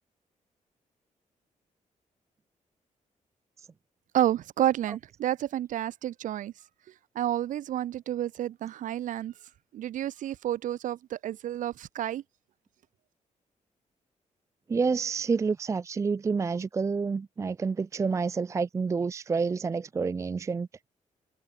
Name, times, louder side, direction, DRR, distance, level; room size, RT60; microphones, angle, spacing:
voice 1, 4.1-6.5 7.1-9.3 9.7-12.2, right 12 dB, 80° right, 0.8 m, -30 dB
voice 2, 14.7-20.7, right 5 dB, 25° right, 0.5 m, -28 dB
wide cardioid pair, 180°, 13 cm